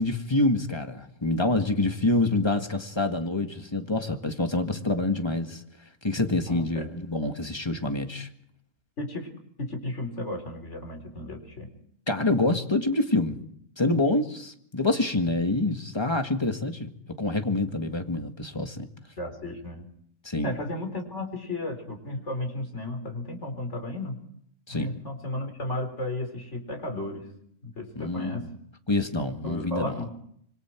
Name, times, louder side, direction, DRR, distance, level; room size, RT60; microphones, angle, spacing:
voice 1, 0.0-5.6 6.0-8.3 12.1-13.4 13.8-16.9 17.2-18.9 20.2-20.6 24.7-25.0 28.0-28.5 28.9-30.0, left 2 dB, 20° left, 1.8 m, -26 dB
voice 2, 6.5-6.9 9.0-9.3 9.6-11.7 19.2-19.8 20.4-24.2 24.7-27.3 27.6-28.5 29.4-30.1, left 1 dB, 65° left, 4.5 m, -34 dB
26.5 x 24.5 x 4.6 m
omnidirectional pair, 1.3 m